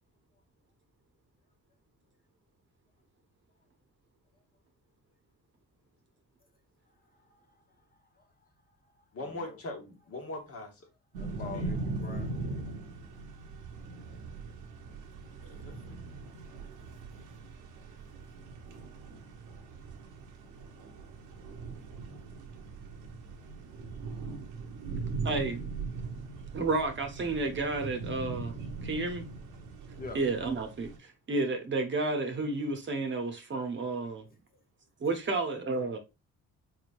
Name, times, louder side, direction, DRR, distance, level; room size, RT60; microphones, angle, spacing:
voice 1, 7.1-8.3 8.7-9.6 11.1-12.5 13.0-13.1 16.4-16.5 30.0-30.2 34.5-34.6, left 4 dB, 30° left, 0.8 m, -47 dB
voice 2, 9.1-10.9 11.4-11.7 15.4-16.1, left 2 dB, 50° left, 1.2 m, -42 dB
sound 1, 11.1-31.0, right 3 dB, 90° right, 0.9 m, -40 dB
voice 3, 25.2-25.6 26.5-28.5 28.8-29.3 30.1-34.2 35.0-36.0, right 3 dB, 40° right, 0.8 m, -31 dB
4.0 x 3.2 x 2.5 m
cardioid pair, 90°, 30 cm